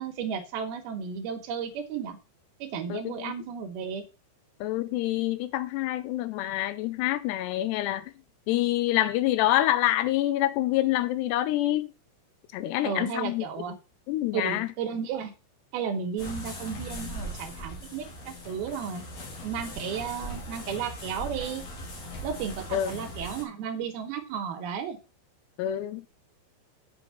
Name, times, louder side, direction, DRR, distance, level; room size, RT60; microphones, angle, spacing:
voice 1, 0.0-2.2 2.6-4.0 12.8-13.8 14.3-15.3 15.7-19.0 19.4-21.7 22.2-25.0, right 7 dB, 70° right, 2.7 m, -33 dB
voice 2, 2.9-3.3 4.6-8.1 8.5-11.9 12.5-13.5 14.1-14.7 22.7-22.9 25.6-26.1, left 14 dB, 80° left, 2.7 m, -26 dB
sound 1, 16.2-23.4, equal, 45° left, 3.2 m, -39 dB
8.2 x 5.1 x 5.7 m
omnidirectional pair, 5.0 m